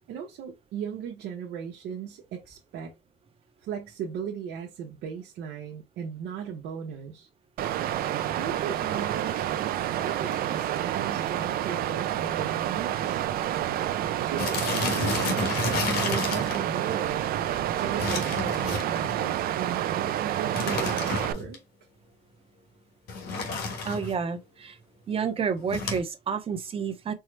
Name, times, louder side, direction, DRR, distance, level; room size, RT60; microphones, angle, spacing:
voice 1, 0.1-2.9 3.6-7.3 8.3-13.2 14.2-15.6 16.0-21.6, right 8 dB, 80° right, 0.8 m, -37 dB
Water, 7.6-21.3, right 11 dB, 60° right, 0.4 m, -29 dB
sound 1, 9.0-9.3 10.0-10.1 10.3-10.4 10.6-10.9 11.3-11.4 11.7-11.8 12.6-12.7 12.9-13.1 13.4-13.5 14.4-16.6 18.0-19.2 20.5-21.6 23.1-24.2 25.7-26.0, left 4 dB, 70° left, 1.4 m, -31 dB
voice 2, 23.8-24.8 25.1-27.1, right 6 dB, 35° right, 0.8 m, -30 dB
4.5 x 2.0 x 3.2 m
cardioid pair, 110°, 17 cm